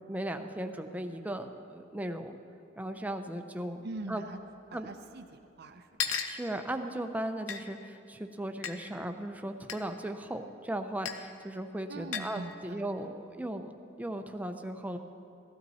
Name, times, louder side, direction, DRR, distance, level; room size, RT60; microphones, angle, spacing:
voice 1, 0.0-2.4 2.8-4.2 4.7-4.9 6.3-13.7 14.0-15.0, right 1 dB, 10° right, 6 dB, 0.6 m, -37 dB
voice 2, 3.8-4.4 4.7-5.2 5.6-6.2 11.9-13.1, right 2 dB, 55° right, 6 dB, 0.6 m, -43 dB
sound 1, 4.0-4.1 4.2-4.3 5.2-5.3 6.0-6.4 7.5-7.6 8.6-8.7 9.7-9.8 11.0-11.2 12.1-12.4, left 7 dB, 75° left, 0.7 m, -34 dB
15.5 x 12.5 x 4.2 m, 2.5 s
head